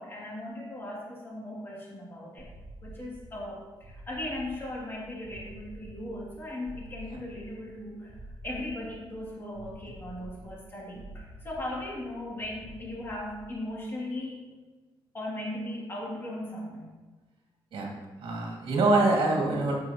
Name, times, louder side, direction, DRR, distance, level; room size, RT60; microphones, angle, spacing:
voice 1, 0.0-2.5 2.8-14.5 15.1-16.9, left 1 dB, 25° left, -5 dB, 2.6 m, -38 dB
sound 1, 2.4-13.7, right 1 dB, 35° right, 1.3 m, -48 dB
voice 2, 18.2-19.7, right 2 dB, 70° right, -1 dB, 2.2 m, -24 dB
13.5 x 6.2 x 3.0 m, 1.3 s
cardioid pair, 145°, 9 cm